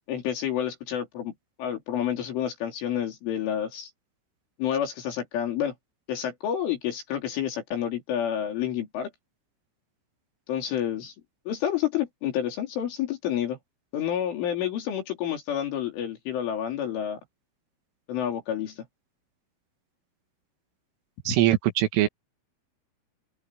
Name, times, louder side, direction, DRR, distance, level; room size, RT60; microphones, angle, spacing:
voice 1, 0.1-1.3 1.6-3.9 4.6-5.7 6.1-9.1 10.5-11.1 11.5-13.6 13.9-17.2 18.1-18.9 21.3-21.4, left 10 dB, 75° left, 6.0 m, -29 dB
voice 2, 21.3-22.1, right 14 dB, 85° right, 4.4 m, -22 dB
open air
omnidirectional pair, 5.6 m